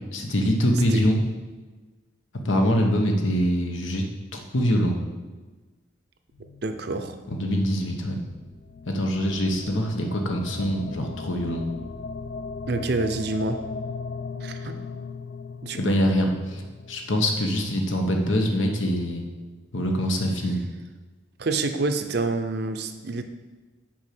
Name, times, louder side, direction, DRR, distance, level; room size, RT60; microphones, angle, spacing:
voice 1, 0.1-1.2 2.4-4.0 4.3-5.0 7.3-8.2 8.9-11.7 15.8-16.6 16.9-19.2 19.7-20.6, equal, 80° left, 3 dB, 1.1 m, -24 dB
sound 1, 6.3-18.6, left 4 dB, 60° left, 0.4 m, -39 dB
voice 2, 6.6-7.2 12.7-13.6 14.4-14.7 15.6-15.8 21.4-23.2, right 3 dB, 55° right, 7 dB, 0.6 m, -27 dB
6.2 x 5.0 x 5.9 m, 1.3 s
head